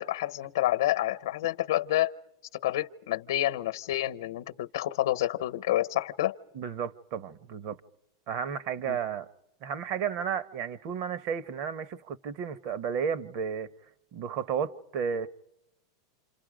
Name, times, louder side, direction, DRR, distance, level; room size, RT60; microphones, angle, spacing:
voice 1, 0.0-2.1 2.5-6.4 8.8-9.0, left 14 dB, 80° left, 0.8 m, -28 dB
voice 2, 6.5-7.8 8.3-9.3 9.6-13.7 14.1-15.3, right 7 dB, 50° right, 1.0 m, -33 dB
29.5 x 27.5 x 5.1 m
supercardioid pair, 145°, 2 cm